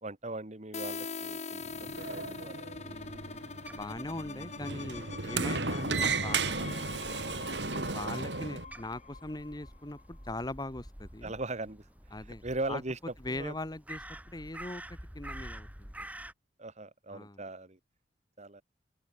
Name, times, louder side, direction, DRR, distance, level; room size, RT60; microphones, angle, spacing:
voice 1, 0.0-3.0 7.7-8.0 11.2-11.8 12.4-13.0 13.3-13.5 16.6-17.8 18.4-18.6, right 2 dB, 40° right, 2.5 m, -39 dB
sound 1, 0.7-10.3, left 4 dB, 40° left, 2.7 m, -43 dB
Sliding door, 1.6-8.6, right 4 dB, 80° right, 2.5 m, -35 dB
voice 2, 2.8-6.8 7.9-11.3 12.1-12.8 13.2-16.1 17.1-17.4, left 2 dB, 25° left, 1.4 m, -41 dB
Crow, 2.9-16.3, right 1 dB, 10° right, 2.9 m, -49 dB
open air
head